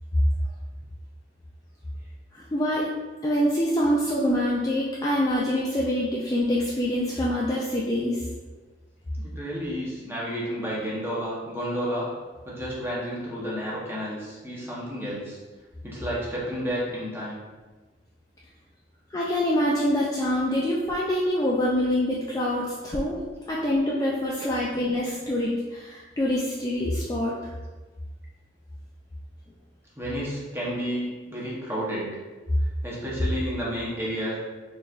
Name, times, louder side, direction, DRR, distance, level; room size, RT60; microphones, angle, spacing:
voice 1, 2.3-2.9 3.2-8.2 19.1-23.2 23.5-27.4, left 1 dB, 20° left, -5 dB, 0.3 m, -25 dB
voice 2, 9.2-12.1 12.4-15.4 15.8-17.4 30.0-32.1 32.8-34.4, equal, 10° right, -6 dB, 0.9 m, -31 dB
4.2 x 3.3 x 2.4 m, 1.3 s
head